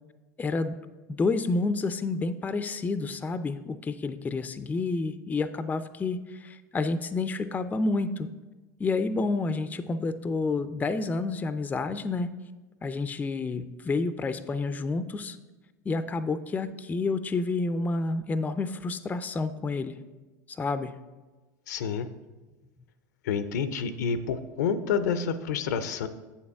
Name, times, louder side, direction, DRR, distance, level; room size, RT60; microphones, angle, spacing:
voice 1, 0.4-0.8 1.1-8.3 8.8-12.3 12.8-15.4 15.9-20.0 20.6-21.0, left 3 dB, 15° left, 12 dB, 0.4 m, -29 dB
voice 2, 21.7-22.1 23.2-26.1, left 6 dB, 70° left, 12 dB, 0.5 m, -28 dB
8.1 x 7.1 x 3.5 m, 1.2 s
hypercardioid pair, 85°, 9 cm